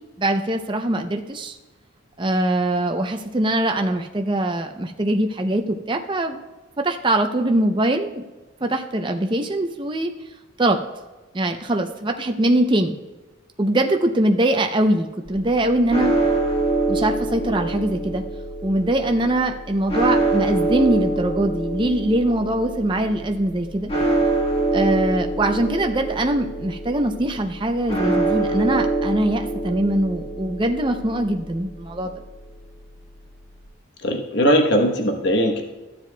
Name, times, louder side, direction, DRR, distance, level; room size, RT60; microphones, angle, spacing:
voice 1, 0.2-1.6 2.2-6.4 6.8-8.2 8.6-10.1 10.6-10.8 11.3-13.0 13.6-16.1 16.9-18.2 18.6-23.9 24.7-32.1, right 1 dB, 20° right, 4 dB, 0.5 m, -22 dB
sound 1, 15.3-33.6, right 2 dB, 25° left, 1.6 m, -26 dB
voice 2, 34.0-35.6, equal, 55° left, 3 dB, 1.0 m, -19 dB
14.0 x 7.3 x 2.2 m, 1.2 s
head